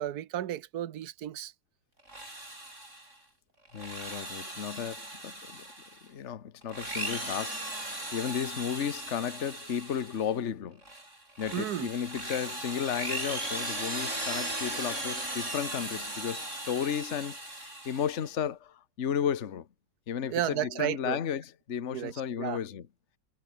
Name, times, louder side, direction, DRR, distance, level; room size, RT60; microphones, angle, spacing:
voice 1, 0.0-1.5 11.5-11.9 20.3-21.2 21.9-22.1 22.4-22.6, right 11 dB, 65° right, 1.5 m, -33 dB
Drill, 2.0-3.1 3.7-6.0 6.6-10.3 10.8-18.3, right 1 dB, 45° right, 8.4 m, -38 dB
voice 2, 3.7-5.7 6.0-7.7 8.1-10.8 11.4-19.7 20.1-22.8, left 8 dB, 45° left, 1.4 m, -34 dB
omnidirectional pair, 1.8 m